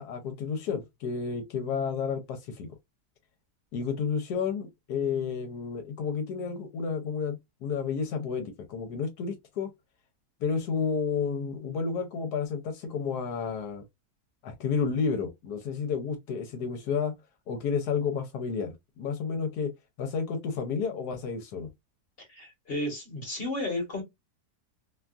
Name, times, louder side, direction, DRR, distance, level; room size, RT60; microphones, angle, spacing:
voice 1, 0.0-2.7 3.7-9.7 10.4-13.8 14.4-17.1 17.5-19.7 20.0-21.7, left 6 dB, 80° left, 1.2 m, -31 dB
voice 2, 22.2-24.0, left 1 dB, 40° left, 1.1 m, -33 dB
2.8 x 2.3 x 2.3 m
omnidirectional pair, 1.7 m